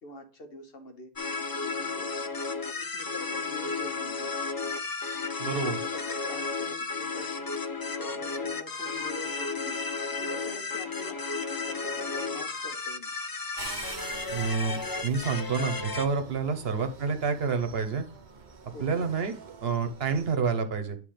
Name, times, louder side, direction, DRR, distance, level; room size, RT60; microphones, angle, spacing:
voice 1, 0.0-1.1 1.6-2.1 2.7-4.5 5.4-7.5 8.0-9.8 10.2-11.2 11.6-13.1 16.5-16.6 18.7-19.1, left 2 dB, 65° left, 5 dB, 1.4 m, -45 dB
sound 1, 1.2-16.1, left 4 dB, 30° left, 0.4 m, -33 dB
voice 2, 5.4-5.8 14.3-18.0 18.8-19.3 19.6-21.0, right 5 dB, 75° right, 8 dB, 1.2 m, -28 dB
sound 2, 13.6-20.4, right 4 dB, 50° right, 0.9 m, -46 dB
9.6 x 3.2 x 5.0 m, 0.37 s
omnidirectional pair, 1.0 m